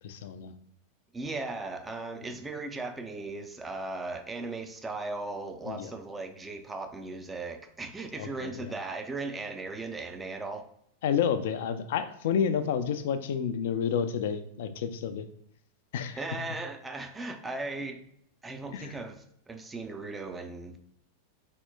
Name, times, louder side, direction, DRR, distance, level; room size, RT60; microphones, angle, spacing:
voice 1, 0.0-0.5 5.7-5.9 8.2-8.7 11.0-15.3 15.9-16.2 18.7-18.9, left 7 dB, 55° left, 10 dB, 0.4 m, -30 dB
voice 2, 1.1-10.7 16.2-18.0 18.4-20.8, right 3 dB, 10° right, 6 dB, 0.5 m, -37 dB
4.4 x 4.2 x 2.2 m, 0.71 s
figure-of-eight pair, 90°, 0 cm